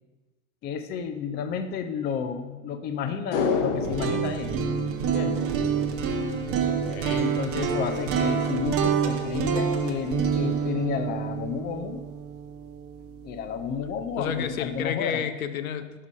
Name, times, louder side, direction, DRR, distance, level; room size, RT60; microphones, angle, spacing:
voice 1, 0.6-4.5 5.0-5.4 7.1-12.0 13.2-15.2, left 6 dB, 25° left, 8 dB, 0.5 m, -31 dB
sound 1, 3.3-5.8 6.1-6.2, left 5 dB, 60° left, 1.1 m, -29 dB
sound 2, 3.8-13.8, right 6 dB, 35° right, 0.7 m, -27 dB
voice 2, 6.6-7.4 14.2-15.9, left 8 dB, 80° left, 9 dB, 0.7 m, -31 dB
5.4 x 4.7 x 5.4 m, 1.2 s
hypercardioid pair, 100°, 41 cm